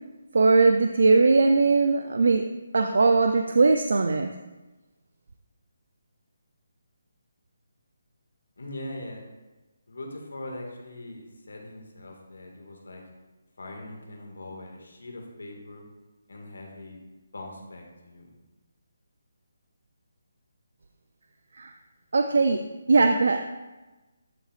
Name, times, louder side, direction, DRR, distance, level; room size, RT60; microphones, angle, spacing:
voice 1, 0.3-2.4 2.7-4.3 21.6-21.7 22.1-22.6 22.9-23.5, right 3 dB, 70° right, 5 dB, 0.4 m, -20 dB
voice 2, 8.6-9.2 9.9-13.0 13.6-15.8 16.3-17.0 17.3-18.3, left 1 dB, 85° left, 1 dB, 1.8 m, -41 dB
11.5 x 4.3 x 2.5 m, 1.1 s
hypercardioid pair, 165°, 0 cm